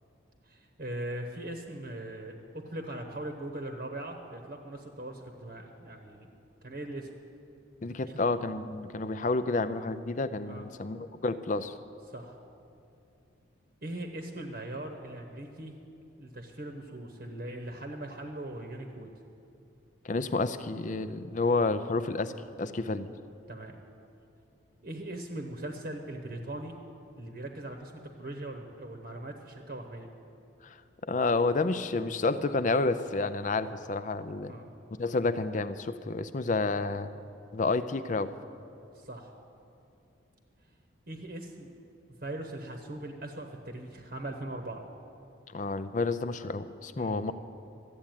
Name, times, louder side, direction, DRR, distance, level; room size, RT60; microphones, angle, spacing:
voice 1, 0.4-6.3 6.6-7.1 8.1-8.2 10.4-10.6 12.1-12.4 13.8-15.8 16.2-19.1 23.5-23.8 24.8-26.7 27.2-30.1 34.5-34.7 38.9-39.3 41.1-41.7 42.2-44.8 47.0-47.2, right 1 dB, 50° right, 4 dB, 0.9 m, -40 dB
voice 2, 7.8-11.7 20.0-22.3 22.6-23.1 30.6-30.8 31.0-34.5 35.0-37.1 37.5-38.3 45.5-47.3, left 3 dB, 40° left, 12 dB, 0.5 m, -30 dB
13.0 x 8.5 x 9.0 m, 2.6 s
head